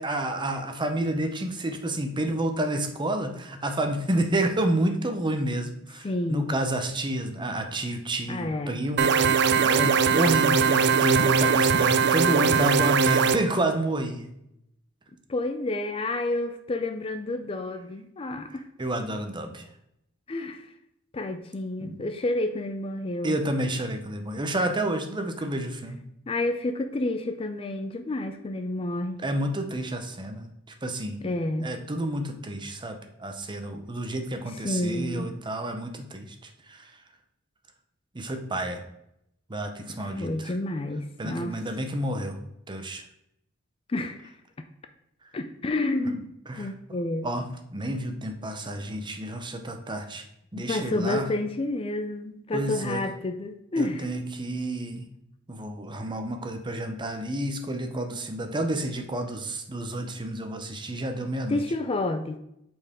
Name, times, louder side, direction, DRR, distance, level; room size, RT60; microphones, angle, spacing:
voice 1, 0.0-14.3 18.5-19.7 21.8-22.0 23.2-26.0 29.2-31.2 31.6-36.9 38.1-38.8 39.5-40.6 41.2-42.4 42.7-43.1 46.5-46.7 47.2-47.4 47.7-50.2 50.5-51.3 52.5-53.0 53.8-55.0 55.5-61.6, right 1 dB, 25° right, 6 dB, 0.8 m, -30 dB
voice 2, 6.0-6.6 8.3-8.8 15.3-18.6 20.3-20.7 21.1-23.4 26.3-29.2 31.2-31.7 34.6-35.3 40.0-41.6 43.9-44.3 45.3-46.3 46.6-47.3 50.7-54.1 61.5-62.4, left 2 dB, 25° left, 8 dB, 0.4 m, -29 dB
sound 1, 9.0-13.4, right 6 dB, 55° right, 0.4 m, -21 dB
8.3 x 4.5 x 3.6 m, 0.78 s
head